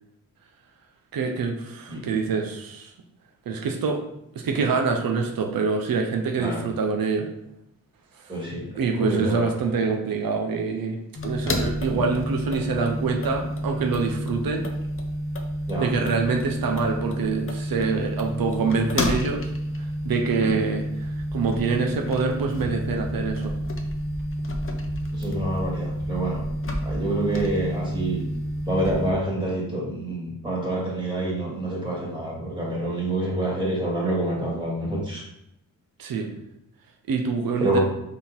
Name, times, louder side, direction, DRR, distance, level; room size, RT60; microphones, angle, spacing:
voice 1, 1.1-2.9 3.5-4.0 4.3-7.3 8.8-11.0 11.2-14.7 15.8-19.5 19.8-23.5 36.0-36.3 37.1-37.8, right 4 dB, 90° right, 2 dB, 0.9 m, -25 dB
voice 2, 8.3-9.5 11.9-12.0 15.7-15.9 20.4-20.5 25.1-26.4 26.8-28.2 28.7-35.2 37.6-37.8, right 1 dB, 15° right, -5 dB, 2.3 m, -27 dB
sound 1, 11.2-29.1, equal, 40° left, 0.9 m, -29 dB
6.0 x 3.9 x 4.4 m, 0.79 s
wide cardioid pair, 125°, 34 cm